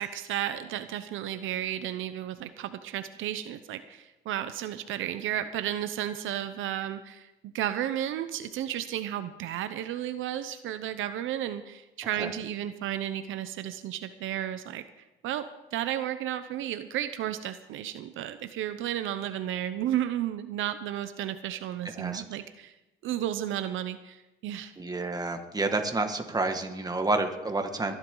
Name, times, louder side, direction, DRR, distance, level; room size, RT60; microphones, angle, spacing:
voice 1, 0.0-14.8 15.2-22.7 23.0-24.7, right 11 dB, 85° right, 11 dB, 0.7 m, -33 dB
voice 2, 21.8-22.2 24.8-28.0, right 2 dB, 20° right, 5 dB, 1.9 m, -29 dB
21.5 x 11.0 x 3.9 m, 0.97 s
cardioid pair, 90°, 20 cm